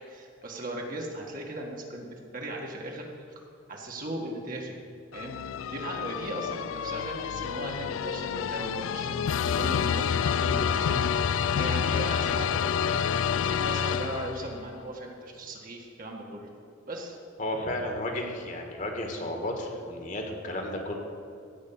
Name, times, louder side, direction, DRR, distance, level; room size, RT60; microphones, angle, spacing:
voice 1, 0.0-2.1 2.3-3.1 3.7-4.8 5.1-13.0 13.3-16.5 16.9-17.2, right 1 dB, 45° right, 0 dB, 1.9 m, -38 dB
sound 1, 5.1-14.6, left 7 dB, 85° left, 0.4 m, -28 dB
voice 2, 17.4-20.9, left 1 dB, 40° left, 2 dB, 1.8 m, -33 dB
16.0 x 5.4 x 8.8 m, 2.4 s
head